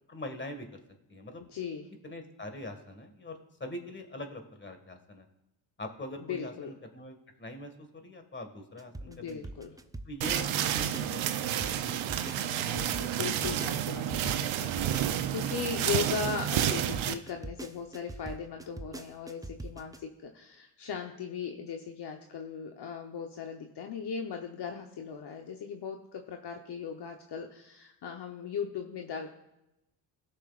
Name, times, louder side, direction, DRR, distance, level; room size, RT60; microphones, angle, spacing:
voice 1, 0.1-0.8 1.1-1.4 2.0-5.3 5.8-9.5 10.1-11.2 11.6-12.3 12.6-12.8, left 1 dB, 25° left, 6 dB, 1.8 m, -43 dB
voice 2, 1.5-1.8 6.2-6.7 9.1-9.8 12.2-29.3, left 6 dB, 55° left, 3 dB, 1.0 m, -38 dB
sound 1, 8.8-15.5 15.9-20.0, right 2 dB, 10° right, 0.6 m, -42 dB
sound 2, 10.2-17.1, right 11 dB, 70° right, 0.8 m, -30 dB
19.5 x 6.5 x 2.5 m, 0.90 s
cardioid pair, 75°, 48 cm